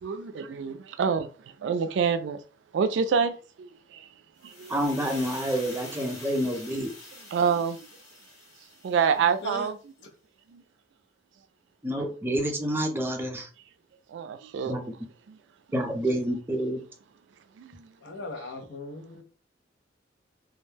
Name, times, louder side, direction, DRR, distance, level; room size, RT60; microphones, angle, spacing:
voice 1, 0.0-1.3 1.6-2.4 2.7-4.1 4.4-4.8 7.3-7.8 8.8-9.8 10.5-10.6 12.0-12.1 14.1-14.8 15.3-15.4 17.6-17.9, right 6 dB, 75° right, 0.3 m, -27 dB
sound 1, 4.4-9.4, left 2 dB, 45° left, 1.2 m, -45 dB
voice 2, 4.7-6.9 11.8-13.5 14.7-14.9 15.7-16.8, equal, 15° right, 0.5 m, -28 dB
voice 3, 18.0-19.2, left 2 dB, 65° left, 0.6 m, -38 dB
2.3 x 2.1 x 3.2 m
head